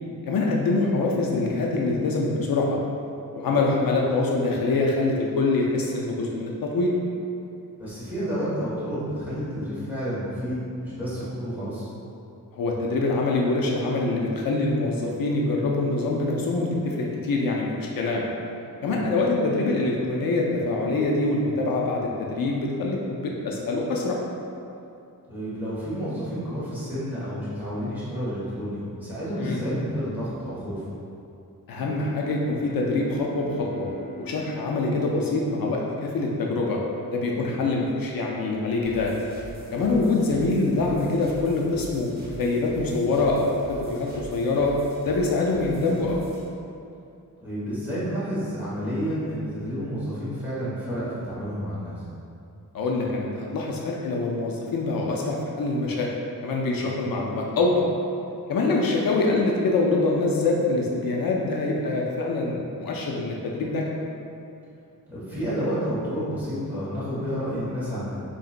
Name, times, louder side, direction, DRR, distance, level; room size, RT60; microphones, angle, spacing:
voice 1, 0.2-2.8 3.3-6.9 12.5-18.3 18.8-24.2 29.4-29.6 31.7-33.9 34.2-36.8 37.1-39.1 39.7-44.7 45.0-46.2 52.7-56.1 56.4-57.9 58.5-63.9, left 3 dB, 80° left, -2 dB, 0.5 m, -25 dB
voice 2, 7.8-11.9 18.9-19.1 25.3-30.8 37.3-37.5 47.4-51.9 56.8-56.9 65.1-68.1, equal, 5° right, -12 dB, 1.4 m, -30 dB
Bowed string instrument, 31.5-36.2, equal, 25° left, 1.0 m, -41 dB
sound 1, 38.8-46.4, right 1 dB, 25° right, 0.7 m, -43 dB
4.0 x 2.9 x 2.4 m, 2.6 s
wide cardioid pair, 125°, 35 cm